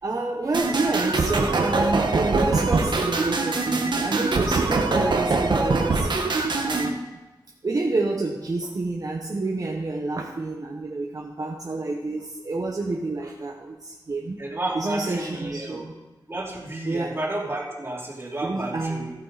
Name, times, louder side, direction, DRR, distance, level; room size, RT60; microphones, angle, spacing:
voice 1, 0.0-6.1 6.7-7.1 7.6-14.4 14.7-15.9 16.8-17.2 18.4-19.1, right 2 dB, 50° right, 1 dB, 1.0 m, -28 dB
sound 1, 0.5-6.9, right 3 dB, 70° right, 1.3 m, -23 dB
voice 2, 14.4-15.8 16.3-19.1, right 2 dB, 30° right, -3 dB, 2.7 m, -31 dB
14.5 x 9.0 x 4.1 m, 1.2 s
wide cardioid pair, 110°, 8 cm